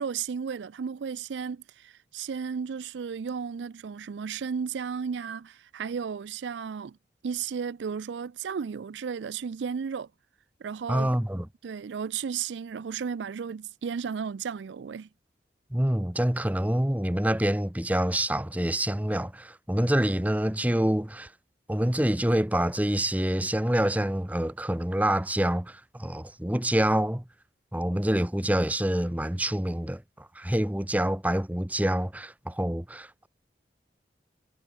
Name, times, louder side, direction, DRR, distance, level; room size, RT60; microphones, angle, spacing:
voice 1, 0.0-7.0 7.2-10.1 10.6-11.2 11.6-15.1, right 6 dB, 85° right, 0.4 m, -34 dB
voice 2, 10.9-11.5 15.7-21.3 21.7-27.2 27.7-33.3, right 1 dB, 10° right, 0.8 m, -26 dB
head